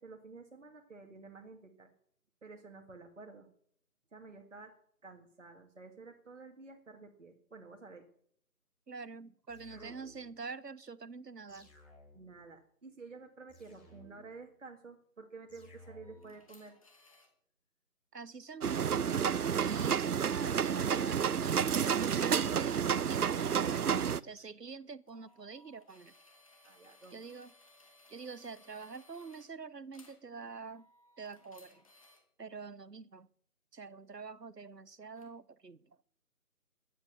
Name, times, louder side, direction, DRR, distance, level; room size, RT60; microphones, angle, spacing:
voice 1, 0.0-1.9 2.4-3.5 4.1-4.7 5.0-8.0 9.7-10.0 12.1-16.8 26.6-27.2, right 4 dB, 50° right, 2.0 m, -51 dB
voice 2, 8.9-11.7 18.1-19.0 19.6-23.8 24.2-26.1 27.1-27.5 28.1-30.9 31.2-31.8 32.4-33.3 33.7-35.8, right 5 dB, 85° right, 1.1 m, -46 dB
sound 1, 9.5-10.4 11.5-12.4 13.5-14.4 15.5-16.4, left 1 dB, ahead, 5.6 m, -57 dB
sound 2, 16.0-17.3 20.2-24.5 25.1-29.5 29.9-30.2 30.6-32.2 35.2-35.3, left 2 dB, 20° left, 2.2 m, -63 dB
sound 3, 18.6-24.2, right 7 dB, 70° right, 0.6 m, -30 dB
14.0 x 11.0 x 6.8 m
figure-of-eight pair, 165°, 47 cm